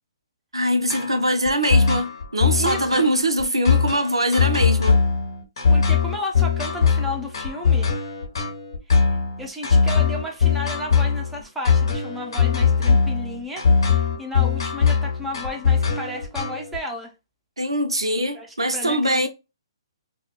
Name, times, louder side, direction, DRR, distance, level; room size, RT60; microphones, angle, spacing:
voice 1, 0.5-5.0 17.6-19.3, equal, 85° right, 0.4 m, -22 dB
sound 1, 0.9-16.8, left 5 dB, 60° left, 0.8 m, -20 dB
voice 2, 2.6-3.1 5.7-7.9 8.9-17.1 18.3-19.3, left 1 dB, 5° right, 0.5 m, -33 dB
2.1 x 2.0 x 2.8 m
figure-of-eight pair, 130°, 3 cm